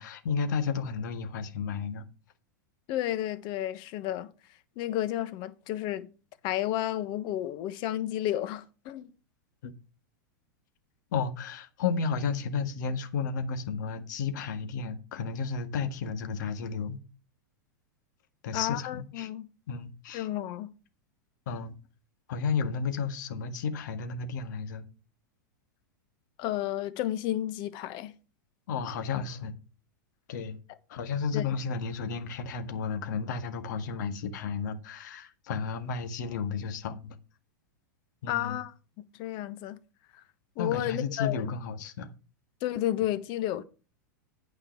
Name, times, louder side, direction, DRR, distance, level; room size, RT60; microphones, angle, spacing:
voice 1, 0.0-2.0 9.6-9.7 11.1-17.0 18.4-19.3 19.7-20.3 21.5-21.7 22.3-24.8 28.7-29.5 30.3-30.6 30.9-37.2 38.2-38.6 40.6-42.1, left 5 dB, 70° left, 1.6 m, -32 dB
voice 2, 2.9-4.3 4.8-6.1 6.4-9.1 18.5-19.5 20.1-20.7 26.4-28.1 31.3-31.4 38.3-38.7 39.2-39.8 40.6-41.5 42.6-43.6, left 13 dB, 45° left, 1.2 m, -31 dB
9.1 x 5.4 x 5.9 m
hypercardioid pair, 110°, 10 cm